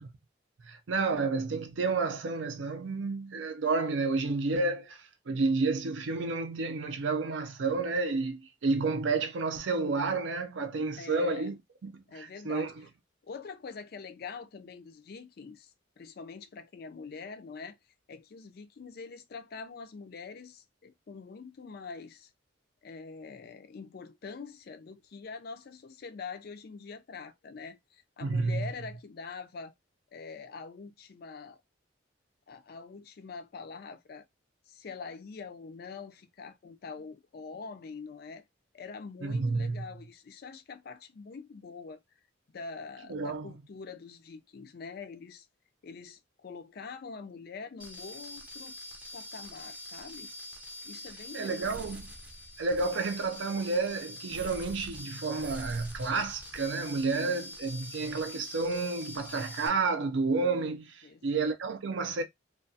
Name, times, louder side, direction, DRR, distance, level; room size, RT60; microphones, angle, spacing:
voice 1, 0.6-11.6 11.8-12.7 28.2-28.6 39.2-39.8 43.1-43.5 51.3-52.1 52.6-62.2, right 3 dB, 75° right, 0.5 m, -30 dB
voice 2, 11.0-11.5 12.1-12.7 13.2-17.8 18.1-22.3 22.8-29.7 30.1-31.6 32.5-34.2 34.7-38.4 38.7-42.0 42.5-45.5 45.8-48.8 49.1-50.3 50.8-51.8 57.1-57.2 61.0-61.2, left 5 dB, 50° left, 0.4 m, -44 dB
sound 1, 47.8-59.7, left 1 dB, 10° right, 0.5 m, -44 dB
2.3 x 2.2 x 2.6 m
head